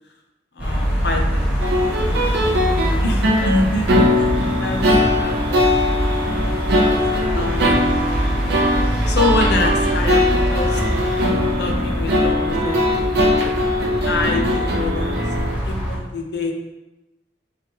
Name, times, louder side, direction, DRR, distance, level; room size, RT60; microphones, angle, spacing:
voice 1, 0.6-1.7 2.1-3.9 4.2-4.3 4.6-6.5 7.3-7.9 9.1-10.8 11.6-13.3 14.0-15.2 15.6-16.5, left 2 dB, 65° left, 2 dB, 0.7 m, -26 dB
sound 1, 0.6-16.0, equal, 5° right, 1.0 m, -23 dB
sound 2, 1.6-15.6, left 1 dB, 60° right, 0.7 m, -20 dB
4.7 x 3.6 x 3.0 m, 1.0 s
head